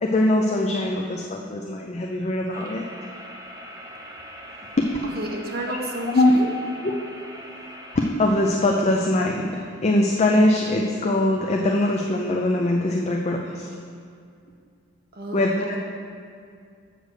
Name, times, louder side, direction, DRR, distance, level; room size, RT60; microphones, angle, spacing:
voice 1, 0.0-2.8 4.8-4.9 5.7-5.8 6.1-6.3 6.8-6.9 8.0-13.7 15.3-15.8, left 1 dB, 35° left, 0 dB, 0.5 m, -22 dB
sound 1, 2.5-8.1, equal, 20° right, 0.9 m, -41 dB
voice 2, 5.0-6.5 15.1-15.8, right 1 dB, 50° right, 0 dB, 1.1 m, -31 dB
7.7 x 5.1 x 6.4 m, 2.3 s
head